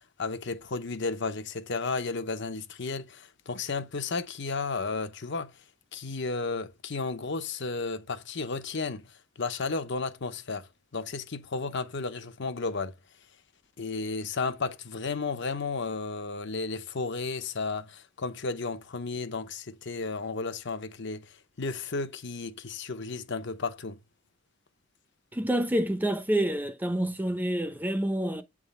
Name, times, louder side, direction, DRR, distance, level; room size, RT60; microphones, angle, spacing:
voice 1, 0.2-5.5 5.9-13.0 13.8-24.0, left 4 dB, 60° left, 0.9 m, -33 dB
voice 2, 25.3-28.4, right 1 dB, 10° right, 0.6 m, -28 dB
8.1 x 3.7 x 5.4 m
head